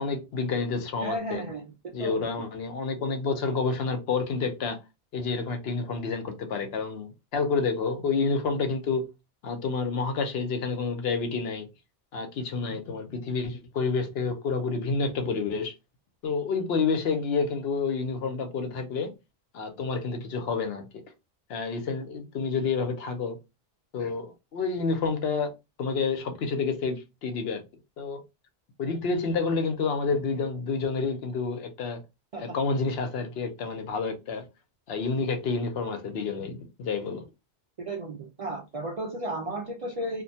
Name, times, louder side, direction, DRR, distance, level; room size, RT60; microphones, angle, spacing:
voice 1, 0.0-1.4 1.9-4.8 5.1-9.1 9.4-11.6 12.1-15.7 16.2-19.1 19.5-21.0 21.5-23.4 23.9-25.5 25.8-27.6 28.0-28.2 28.8-32.0 32.4-34.4 34.9-37.2, left 4 dB, 75° left, 0.9 m, -29 dB
voice 2, 1.0-2.2 32.3-32.6 37.9-40.2, right 1 dB, 55° right, 0.4 m, -34 dB
2.5 x 2.1 x 2.7 m
omnidirectional pair, 1.1 m